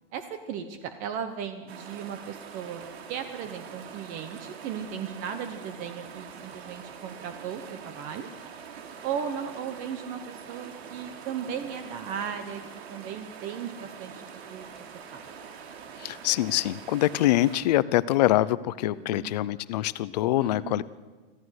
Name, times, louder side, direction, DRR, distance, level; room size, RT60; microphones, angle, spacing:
voice 1, 0.1-8.3 9.0-12.6 12.9-14.7 15.1-15.3 19.0-19.3 20.4-20.8, right 8 dB, 25° right, 8 dB, 1.0 m, -36 dB
sound 1, 1.7-17.6, right 6 dB, 85° right, 3.4 m, -44 dB
voice 2, 16.0-20.8, left 15 dB, 40° left, 18 dB, 0.6 m, -24 dB
25.5 x 15.5 x 6.5 m, 1.3 s
supercardioid pair, 170°, 31 cm